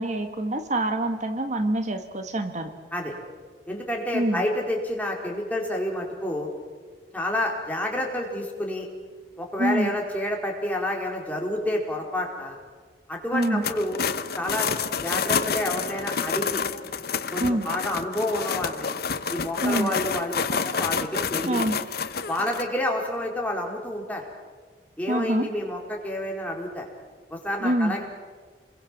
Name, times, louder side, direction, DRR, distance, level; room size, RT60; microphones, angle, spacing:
voice 1, 0.0-2.7 4.1-4.4 9.6-9.9 13.3-13.6 17.4-17.7 19.6-19.9 21.5-21.8 25.1-25.5 27.6-28.0, right 1 dB, 45° right, 8 dB, 1.5 m, -25 dB
voice 2, 3.7-6.5 7.1-8.9 9.4-12.6 13.1-14.0 14.4-14.7 15.0-16.6 17.3-18.9 19.3-21.6 22.3-24.2 25.0-26.9 27.3-28.0, left 1 dB, 10° left, -1 dB, 4.3 m, -29 dB
sound 1, 13.4-22.6, left 6 dB, 60° left, 1.0 m, -29 dB
28.5 x 22.5 x 7.4 m, 1.5 s
head